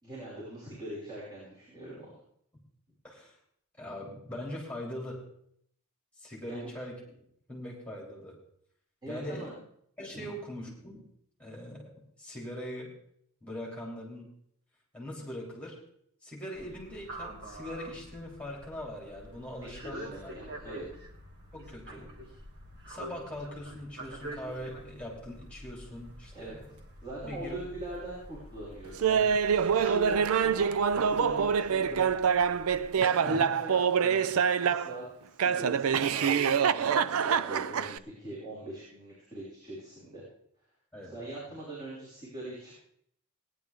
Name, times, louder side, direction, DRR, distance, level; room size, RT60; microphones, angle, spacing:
voice 1, 0.0-2.1 6.5-6.6 9.0-9.5 10.1-10.3 19.8-20.8 26.3-26.6 27.0-32.4 32.9-35.1 35.3-40.3 41.1-42.8, right 2 dB, 20° right, -9 dB, 5.8 m, -42 dB
voice 2, 3.8-5.2 6.2-7.0 7.5-8.3 9.1-9.5 10.0-11.0 11.4-11.9 12.2-12.9 13.4-14.3 14.9-15.8 16.2-20.4 20.8-20.9 21.5-22.1 22.9-26.8 27.3-27.6 33.2-33.5 40.9-41.2, left 1 dB, 5° left, -3 dB, 3.2 m, -41 dB
sound 1, 16.5-32.9, right 1 dB, 50° right, 2.1 m, -47 dB
Laughter, 29.0-35.0 35.4-38.0, right 7 dB, 70° right, 0.5 m, -26 dB
19.0 x 10.5 x 3.7 m, 0.68 s
head